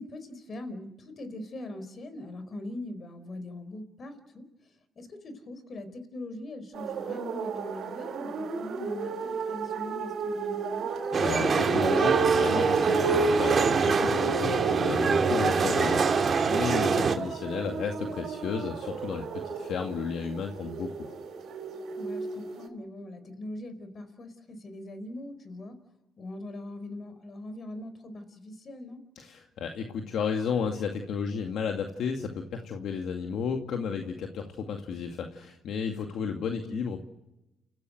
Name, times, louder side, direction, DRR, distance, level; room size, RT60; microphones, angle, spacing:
voice 1, 0.0-4.4 5.0-10.9 16.8-17.1 22.0-25.8 26.2-29.0 36.6-36.7, left 1 dB, 50° left, 11 dB, 4.5 m, -41 dB
sound 1, 6.7-22.7, right 4 dB, 65° right, 3.9 m, -31 dB
sound 2, 11.1-17.2, right 5 dB, 45° right, 3.0 m, -25 dB
voice 2, 11.2-21.2 29.2-37.1, left 6 dB, 70° left, 3 dB, 2.2 m, -33 dB
30.0 x 15.5 x 7.9 m, 0.93 s
supercardioid pair, 65°, 0 cm